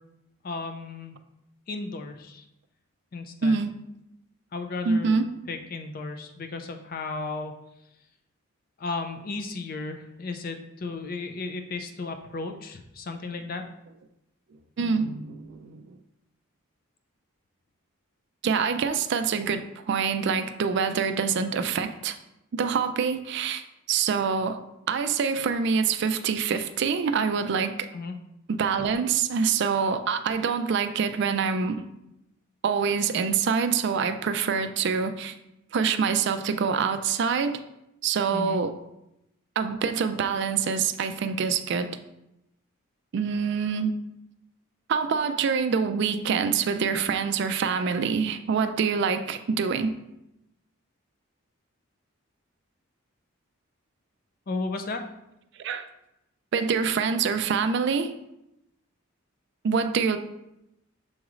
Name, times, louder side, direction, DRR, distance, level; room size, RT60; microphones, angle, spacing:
voice 1, 0.4-1.2 1.7-2.5 3.1-3.6 4.5-7.5 8.8-13.6 27.9-28.2 38.3-38.6 54.5-55.0, left 3 dB, 40° left, 6 dB, 0.4 m, -34 dB
voice 2, 3.4-3.7 4.9-5.3 14.8-16.0 18.4-22.2 22.5-23.6 23.9-24.6 24.9-27.9 28.5-31.8 32.6-35.3 35.7-37.6 38.0-38.7 39.6-41.9 43.1-43.9 44.9-49.9 55.6-55.8 56.5-58.1 59.6-60.2, right 6 dB, 55° right, 10 dB, 0.3 m, -25 dB
7.0 x 3.0 x 2.5 m, 0.87 s
head